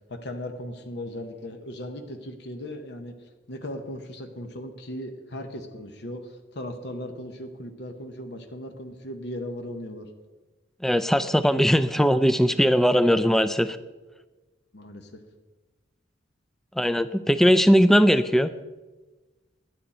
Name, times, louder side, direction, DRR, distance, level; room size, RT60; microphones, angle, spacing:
voice 1, 0.1-3.1 3.5-10.1 14.7-15.2, left 1 dB, 65° left, 6 dB, 0.9 m, -37 dB
voice 2, 10.8-13.8 16.8-18.5, equal, ahead, 12 dB, 0.4 m, -19 dB
11.5 x 9.4 x 4.3 m, 1.2 s
head